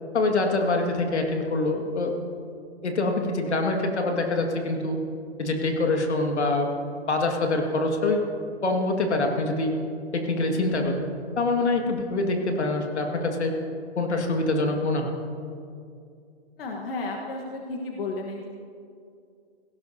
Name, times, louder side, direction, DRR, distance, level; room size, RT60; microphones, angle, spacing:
voice 1, 0.1-2.1 2.8-5.0 5.4-6.7 7.1-8.2 8.6-9.8 10.1-11.1 11.4-13.5 14.0-15.2, left 2 dB, 80° left, 2 dB, 2.1 m, -25 dB
voice 2, 16.6-18.5, left 3 dB, 60° left, 0 dB, 1.4 m, -33 dB
17.0 x 17.0 x 2.8 m, 2.4 s
hypercardioid pair, 145°, 33 cm